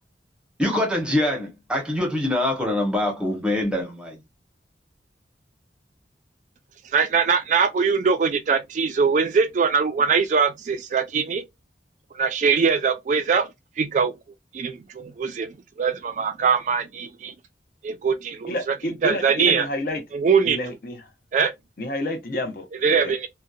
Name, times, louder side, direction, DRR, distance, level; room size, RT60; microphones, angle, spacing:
voice 1, 0.6-4.2, left 1 dB, 5° right, 0.7 m, -24 dB
voice 2, 6.9-11.4 12.2-13.5 13.8-14.1 14.5-17.3 17.8-19.7 20.1-20.6 21.3-21.5 22.8-23.3, right 5 dB, 45° right, 0.3 m, -22 dB
voice 3, 18.5-20.0 20.4-21.0 21.8-23.1, left 1 dB, 50° left, 0.6 m, -29 dB
2.7 x 2.1 x 2.3 m
head